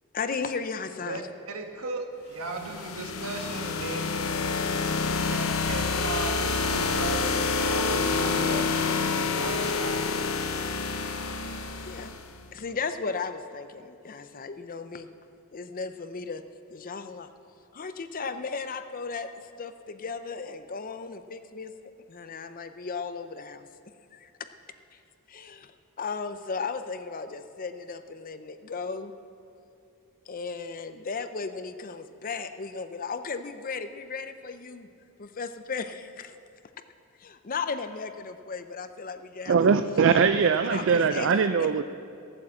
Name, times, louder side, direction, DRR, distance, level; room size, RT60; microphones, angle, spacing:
voice 1, 0.1-1.2 11.8-12.1 12.5-15.1 15.5-16.4 16.7-17.3 17.7-19.3 19.6-21.7 22.1-23.7 24.1-24.3 25.3-25.7 26.0-29.1 30.3-34.9 35.2-36.3 37.2-39.6 39.9-40.2 40.6-41.3 41.6-41.7, left 5 dB, 40° left, 10 dB, 0.6 m, -35 dB
voice 2, 1.5-4.3 4.6-10.0, right 3 dB, 75° right, 4 dB, 1.4 m, -36 dB
sound 1, 2.4-12.3, left 4 dB, 75° left, 0.9 m, -28 dB
voice 3, 39.5-41.8, right 5 dB, 60° right, 10 dB, 0.4 m, -21 dB
15.0 x 8.7 x 7.5 m, 2.5 s
head